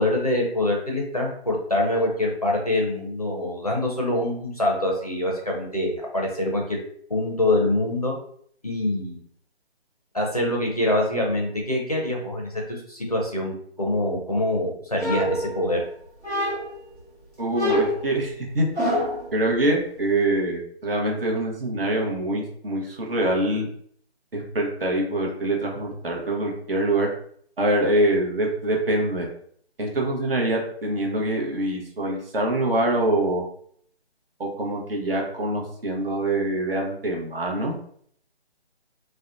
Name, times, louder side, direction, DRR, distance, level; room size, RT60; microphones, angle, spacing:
voice 1, 0.0-6.8 7.1-8.1 8.6-9.2 10.1-15.8, left 1 dB, 35° left, -1 dB, 0.4 m, -25 dB
sound 1, 15.0-15.8 16.2-16.9 17.5-19.3, equal, 80° right, 1.4 m, -26 dB
voice 2, 17.4-18.7 19.3-23.7 24.3-27.1 27.6-29.3 29.8-33.4 34.4-37.8, right 1 dB, 60° right, 0 dB, 0.8 m, -24 dB
2.6 x 2.1 x 2.4 m, 0.62 s
figure-of-eight pair, 165°, 33 cm